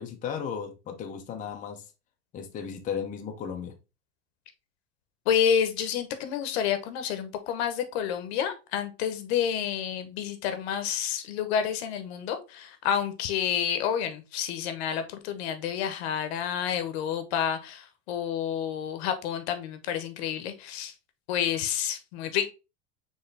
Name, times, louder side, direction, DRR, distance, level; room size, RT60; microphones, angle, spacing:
voice 1, 0.0-1.9 2.3-3.8, left 7 dB, 25° left, 0.6 m, -35 dB
voice 2, 5.3-20.9 21.3-22.5, left 8 dB, 75° left, 1.0 m, -29 dB
4.6 x 3.2 x 3.2 m
supercardioid pair, 135°, 32 cm